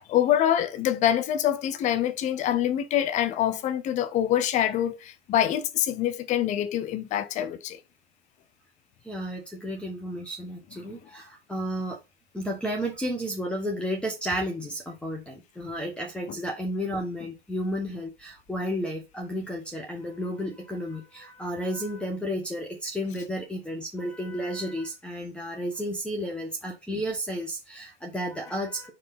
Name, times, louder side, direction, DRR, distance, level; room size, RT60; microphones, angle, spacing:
voice 1, 0.1-7.8, left 11 dB, 25° left, 0.7 m, -25 dB
voice 2, 9.0-12.0 12.3-28.9, equal, 5° left, 1.3 m, -32 dB
4.8 x 4.6 x 5.6 m
hypercardioid pair, 120°, 31 cm